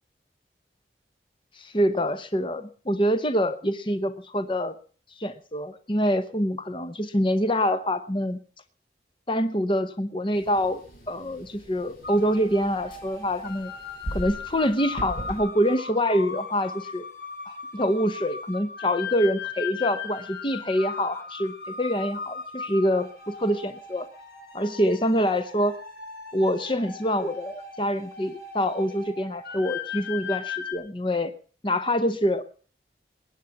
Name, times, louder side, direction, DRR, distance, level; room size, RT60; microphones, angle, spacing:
voice 1, 1.6-4.7 5.2-8.4 9.3-10.8 11.1-13.7 14.1-17.1 17.5-24.1 24.5-25.7 26.3-31.3 31.6-32.4, equal, 30° left, 11 dB, 0.9 m, -25 dB
sound 1, 10.3-15.4, right 1 dB, 55° left, 5.4 m, -40 dB
sound 2, 12.0-30.7, left 5 dB, 70° left, 2.7 m, -38 dB
21.5 x 9.3 x 5.8 m, 0.41 s
head